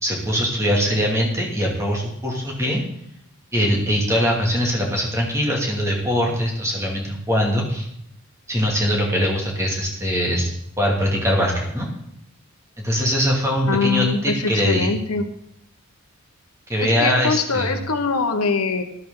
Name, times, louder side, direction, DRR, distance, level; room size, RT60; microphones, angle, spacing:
voice 1, 0.0-2.8 3.5-7.9 8.5-11.9 12.8-14.9 16.7-17.7, equal, 15° right, -1 dB, 2.4 m, -22 dB
voice 2, 13.7-15.2 16.8-18.8, left 4 dB, 85° left, 6 dB, 1.3 m, -23 dB
12.5 x 11.5 x 3.9 m, 0.75 s
head